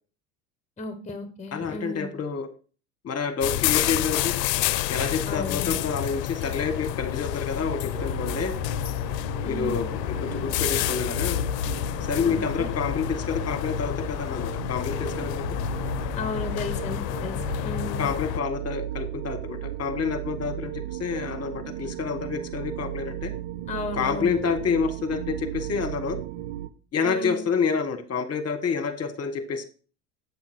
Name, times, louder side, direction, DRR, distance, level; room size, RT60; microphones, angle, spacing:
voice 1, 0.8-2.1 5.3-5.7 9.4-9.9 12.2-12.7 16.2-18.1 23.7-24.4 27.0-27.5, left 2 dB, 15° left, 9 dB, 1.0 m, -34 dB
voice 2, 1.5-2.5 3.0-4.3 4.9-8.5 9.4-11.4 12.1-15.4 18.0-23.3 23.9-26.2 26.9-29.6, left 5 dB, 30° left, 10 dB, 1.3 m, -28 dB
sound 1, 3.4-18.4, left 15 dB, 80° left, 0.5 m, -29 dB
sound 2, 7.6-26.7, right 13 dB, 65° right, 0.9 m, -36 dB
8.3 x 5.8 x 4.3 m, 0.38 s
hypercardioid pair, 80°, 49 cm